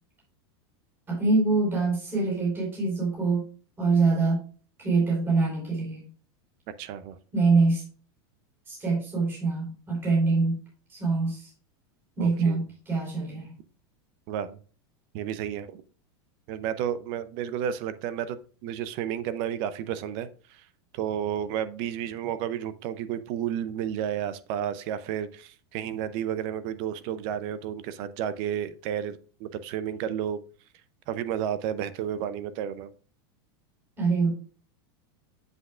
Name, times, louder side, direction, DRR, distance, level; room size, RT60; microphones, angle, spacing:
voice 1, 1.1-3.4 3.8-4.4 4.8-6.0 7.3-7.8 8.7-10.6 10.9-11.5 12.2-13.5 34.0-34.3, right 3 dB, 15° right, 4.5 m, -24 dB
voice 2, 6.8-7.2 12.2-12.6 14.3-14.6 15.1-15.8 16.5-20.6 20.9-30.4 31.1-32.9, right 9 dB, 40° right, 0.6 m, -32 dB
8.2 x 7.9 x 2.4 m
supercardioid pair, 155°, 14 cm